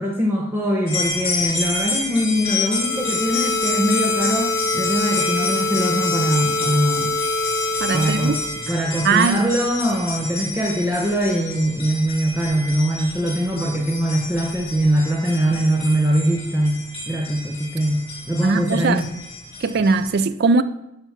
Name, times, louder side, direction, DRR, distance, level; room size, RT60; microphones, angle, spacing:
voice 1, 0.0-7.2 7.9-8.4 8.7-19.1, equal, 10° right, 0.7 m, -22 dB
sound 1, 0.9-20.1, left 3 dB, 25° left, 3.2 m, -29 dB
sound 2, 2.6-8.7, left 3 dB, 90° left, 1.3 m, -25 dB
voice 2, 7.8-8.4 9.0-9.5 18.4-19.0 19.6-20.6, right 4 dB, 50° right, 0.4 m, -19 dB
10.0 x 3.4 x 5.6 m
head